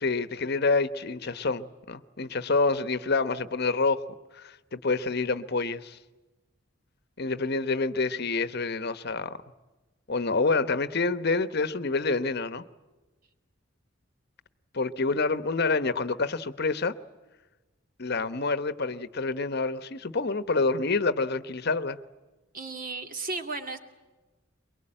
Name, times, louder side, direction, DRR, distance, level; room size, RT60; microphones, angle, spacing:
voice 1, 0.0-4.0 4.3-6.0 7.2-9.4 10.1-12.6 14.7-16.9 18.0-22.0, left 3 dB, 55° left, 1.0 m, -27 dB
voice 2, 22.5-23.8, right 3 dB, 45° right, 2.6 m, -34 dB
23.5 x 23.0 x 8.8 m
head